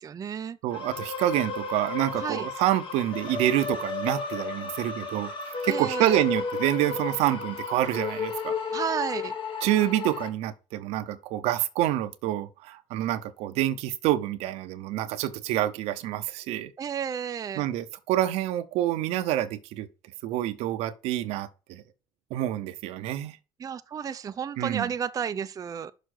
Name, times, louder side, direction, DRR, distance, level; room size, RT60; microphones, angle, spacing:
voice 1, 0.0-0.6 2.2-2.5 5.7-6.2 8.7-9.3 16.8-17.6 23.6-25.9, right 7 dB, 30° right, 0.5 m, -32 dB
voice 2, 0.6-5.3 5.6-8.6 9.6-16.7 17.6-19.9 20.2-21.8 22.3-23.4 24.6-24.9, right 13 dB, 75° right, 0.8 m, -27 dB
sound 1, 0.7-10.3, left 5 dB, 50° left, 1.8 m, -33 dB
6.5 x 5.0 x 6.4 m
supercardioid pair, 90°, 11 cm